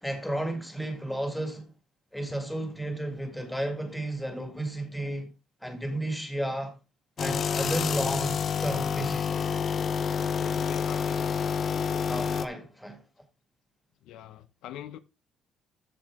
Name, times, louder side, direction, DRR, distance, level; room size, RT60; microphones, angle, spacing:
voice 1, 0.0-1.7 2.1-5.3 5.6-6.8 7.2-9.6 12.1-13.0, right 1 dB, ahead, 1.9 m, -33 dB
sound 1, 7.2-12.5, left 7 dB, 35° left, 0.7 m, -28 dB
voice 2, 10.2-11.7 14.0-15.0, left 12 dB, 75° left, 0.8 m, -44 dB
14.0 x 4.8 x 3.6 m
cardioid pair, 170°, 0 cm